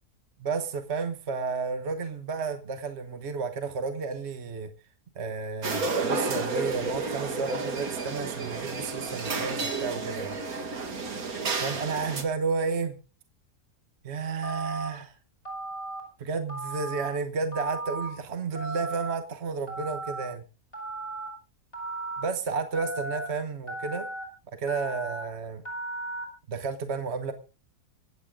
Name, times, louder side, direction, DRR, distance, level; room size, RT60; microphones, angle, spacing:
voice 1, 0.4-4.7 5.1-10.4 11.6-13.0 14.0-15.1 16.2-20.4 22.2-24.1 24.6-25.6 26.5-27.3, right 5 dB, 45° right, 8 dB, 1.4 m, -32 dB
sound 1, 5.6-12.2, right 3 dB, 65° right, 2.1 m, -31 dB
Telephone, 14.4-14.9 15.4-16.0 16.5-17.1 17.5-18.1 18.5-19.1 19.7-20.2 20.7-21.3 21.7-22.2 22.7-23.3 23.7-24.2 24.7-25.2 25.6-26.2, right 2 dB, 35° left, 6.7 m, -35 dB
25.5 x 8.7 x 3.7 m, 0.33 s
omnidirectional pair, 1.7 m